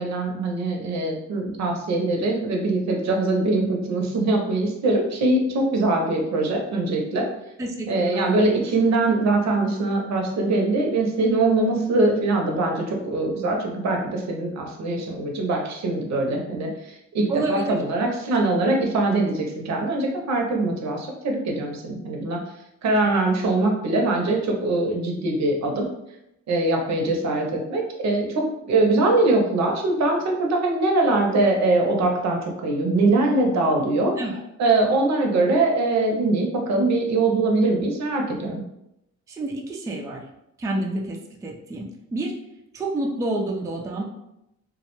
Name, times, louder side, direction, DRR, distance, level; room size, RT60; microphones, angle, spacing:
voice 1, 0.0-7.3 7.9-22.4 22.8-25.8 26.5-34.1 34.6-38.6, right 2 dB, 60° right, 1 dB, 0.6 m, -22 dB
voice 2, 7.6-8.3 17.3-17.8 34.2-34.4 39.3-40.2 40.6-42.3 42.7-44.0, right 2 dB, 10° right, -2 dB, 0.3 m, -29 dB
2.2 x 2.1 x 2.9 m, 0.85 s
cardioid pair, 90°, 30 cm